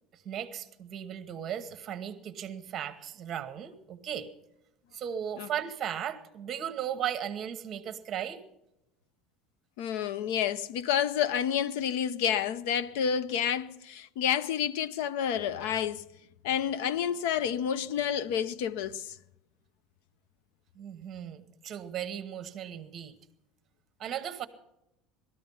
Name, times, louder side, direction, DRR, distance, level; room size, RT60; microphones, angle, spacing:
voice 1, 0.1-4.3 4.9-8.4 20.7-23.1 24.0-24.5, right 9 dB, 25° right, 1.1 m, -36 dB
voice 2, 9.8-16.1 16.4-19.2, left 9 dB, 80° left, 0.6 m, -29 dB
19.0 x 13.0 x 5.4 m
cardioid pair, 180°, 0 cm